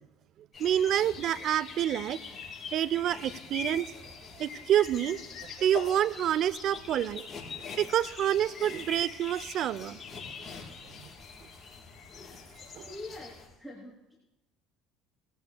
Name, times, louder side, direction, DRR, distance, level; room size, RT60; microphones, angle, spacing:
sound 1, 0.5-13.5, left 5 dB, 35° left, 5.4 m, -43 dB
voice 1, 0.6-2.2 2.7-3.9 4.4-5.2 5.6-7.3 7.8-10.0 11.0-11.1 12.7-12.9, right 11 dB, 60° right, 19 dB, 0.5 m, -27 dB
voice 2, 12.9-14.1, left 2 dB, ahead, -6 dB, 3.1 m, -45 dB
21.0 x 16.0 x 2.3 m, 0.96 s
supercardioid pair, 90°, 0 cm